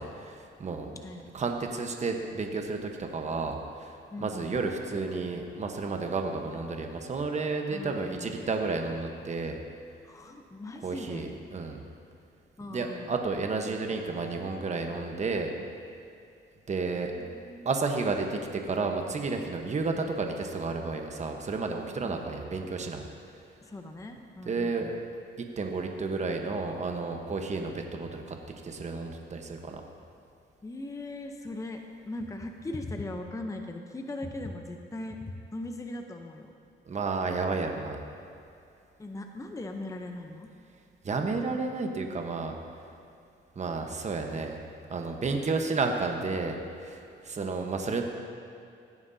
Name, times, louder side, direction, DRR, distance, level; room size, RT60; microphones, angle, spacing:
voice 1, 0.0-1.0 1.3-9.6 10.8-11.8 12.7-15.5 16.7-17.1 17.6-23.0 24.5-24.9 25.4-28.4 28.6-29.8 36.8-38.0 41.0-42.6 43.5-44.6 44.9-48.0, right 3 dB, 35° right, 3 dB, 1.1 m, -32 dB
voice 2, 4.1-4.6 7.7-8.5 10.0-11.4 12.6-13.1 17.2-17.7 22.0-22.4 23.6-25.0 30.6-36.5 39.0-40.5 47.4-47.6, left 2 dB, 15° left, 4 dB, 0.8 m, -39 dB
16.5 x 9.5 x 2.8 m, 2.5 s
cardioid pair, 90°, 20 cm